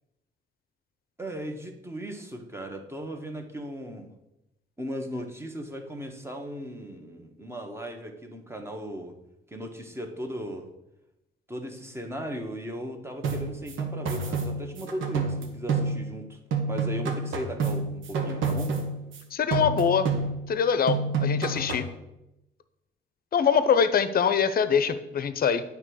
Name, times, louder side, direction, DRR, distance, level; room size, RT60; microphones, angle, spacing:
voice 1, 1.2-4.1 4.8-9.2 9.5-10.7 11.5-16.4 16.7-18.7, equal, 10° right, 4 dB, 1.3 m, -37 dB
sound 1, 13.2-16.2 16.5-19.2 19.5-20.6 20.9-22.0, right 4 dB, 80° right, 1.3 m, -29 dB
voice 2, 19.3-20.1 20.5-21.8 23.3-25.6, left 7 dB, 50° left, 12 dB, 0.7 m, -23 dB
9.1 x 3.4 x 6.3 m, 0.90 s
cardioid pair, 90°, 20 cm